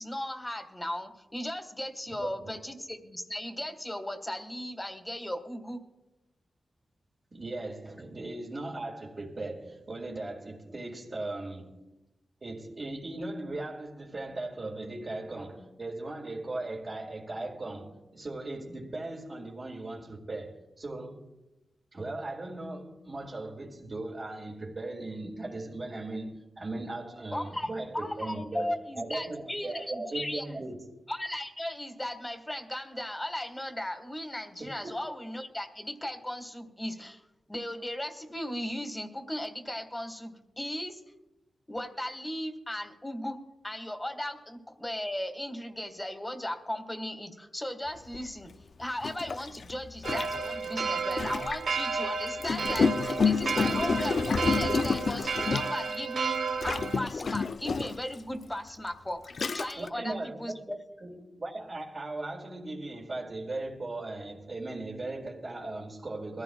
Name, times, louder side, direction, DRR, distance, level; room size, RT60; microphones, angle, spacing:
voice 1, 0.0-5.8 27.3-30.4 31.1-37.2 37.5-41.0 41.7-43.4 43.6-48.5 48.8-60.8 61.1-61.2, left 1 dB, 15° left, 1.7 m, -37 dB
voice 2, 2.2-2.6 7.3-11.8 12.4-21.3 21.9-30.8 34.6-34.9 59.8-60.6 61.0-66.4, right 2 dB, 45° right, 2.1 m, -38 dB
Gurgling, 48.1-48.2 49.0-51.7 52.4-56.0 56.6-58.1 58.8-58.9 59.3-59.9, left 5 dB, 60° left, 0.4 m, -29 dB
sound 1, 50.0-57.0, right 5 dB, 80° right, 0.9 m, -32 dB
22.0 x 14.5 x 2.3 m
cardioid pair, 70°, 0 cm